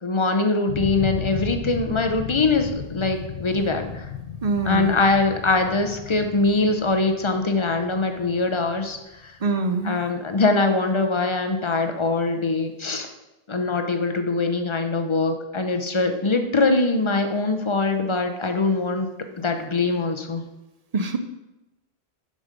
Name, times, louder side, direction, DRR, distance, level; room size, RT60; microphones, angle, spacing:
voice 1, 0.0-4.1 4.7-9.4 9.8-13.1 13.5-19.1 19.4-20.4, left 3 dB, 30° left, 5 dB, 0.7 m, -23 dB
sound 1, 0.7-9.5, left 7 dB, 85° left, 1.0 m, -35 dB
voice 2, 4.4-5.0 9.4-10.0 20.9-21.2, right 3 dB, 45° right, 7 dB, 0.6 m, -24 dB
7.5 x 5.3 x 5.1 m, 0.99 s
omnidirectional pair, 1.0 m